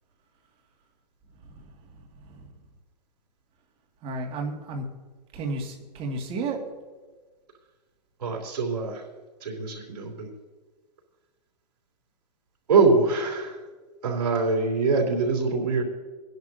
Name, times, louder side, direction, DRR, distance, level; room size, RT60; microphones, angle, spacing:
voice 1, 4.0-4.9 5.3-6.6, right 3 dB, 25° right, 1 dB, 1.9 m, -32 dB
voice 2, 8.2-9.0 9.4-10.3 12.7-13.6 14.0-15.8, right 4 dB, 75° right, 1 dB, 3.2 m, -23 dB
25.5 x 10.5 x 2.6 m, 1.4 s
hypercardioid pair, 140°, 21 cm